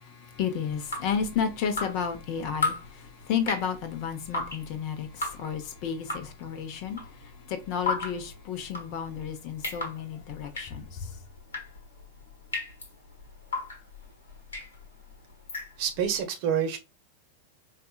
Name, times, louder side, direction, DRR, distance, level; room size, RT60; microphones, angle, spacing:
voice 1, 0.0-11.1, left 7 dB, 45° left, 0.8 m, -32 dB
Drip, 0.7-16.1, left 3 dB, 70° left, 1.3 m, -36 dB
voice 2, 15.8-16.8, right 8 dB, 45° right, 0.9 m, -27 dB
4.6 x 2.5 x 2.3 m
figure-of-eight pair, 90°, 0 cm